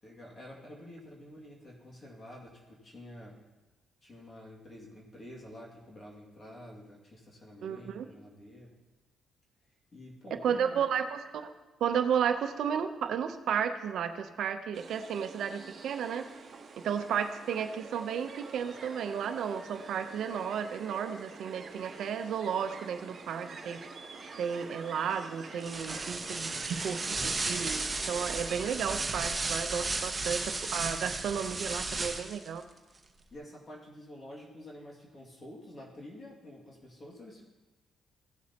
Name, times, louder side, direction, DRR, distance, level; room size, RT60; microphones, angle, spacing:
voice 1, 0.0-3.4 4.0-8.8 9.9-10.8 26.3-26.7 33.3-37.4, left 1 dB, 35° left, -3 dB, 2.3 m, -49 dB
voice 2, 7.6-8.1 10.4-11.5 11.8-16.3 16.8-23.8 24.4-32.6, right 7 dB, 70° right, 8 dB, 0.7 m, -33 dB
sound 1, 14.7-28.7, right 4 dB, 45° right, 1.1 m, -47 dB
sound 2, 18.6-28.6, right 1 dB, 5° left, 3.9 m, -54 dB
sound 3, 25.6-32.5, right 3 dB, 25° right, 0.9 m, -34 dB
16.0 x 7.3 x 2.9 m, 1.2 s
cardioid pair, 90°, 0 cm